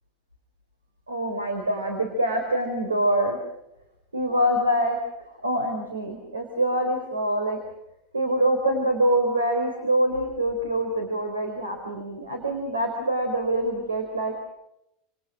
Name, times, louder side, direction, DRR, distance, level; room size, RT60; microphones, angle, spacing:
voice 1, 1.1-3.4 4.1-5.0 5.3-7.6 8.1-14.3, right 1 dB, 80° right, 5 dB, 4.5 m, -25 dB
30.0 x 28.0 x 6.1 m, 0.84 s
figure-of-eight pair, 80°, 0 cm